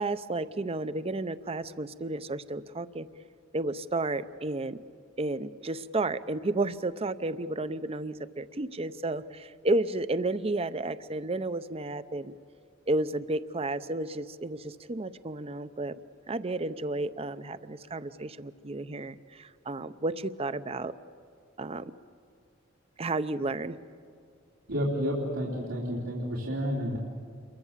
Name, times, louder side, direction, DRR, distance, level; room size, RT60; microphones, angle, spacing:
voice 1, 0.0-3.1 3.5-4.8 5.2-12.3 12.9-16.0 16.3-20.9 21.6-21.9 23.0-23.8, right 2 dB, 30° right, 13 dB, 0.6 m, -32 dB
voice 2, 24.7-27.0, equal, 90° right, -5 dB, 3.4 m, -30 dB
28.5 x 23.0 x 7.4 m, 2.3 s
head